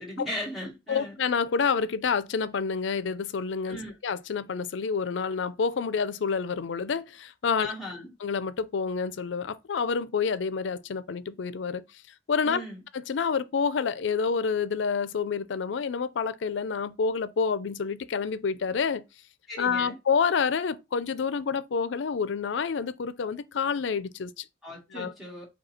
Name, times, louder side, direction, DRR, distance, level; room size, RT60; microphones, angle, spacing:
voice 1, 0.0-1.2 3.6-3.9 7.6-8.1 12.4-12.8 19.5-20.0 24.6-25.5, left 1 dB, ahead, 1.7 m, -37 dB
voice 2, 0.9-7.7 8.2-11.8 12.3-12.6 12.9-19.0 19.6-24.5 24.9-25.1, left 5 dB, 80° left, 0.4 m, -28 dB
5.1 x 2.3 x 4.2 m
head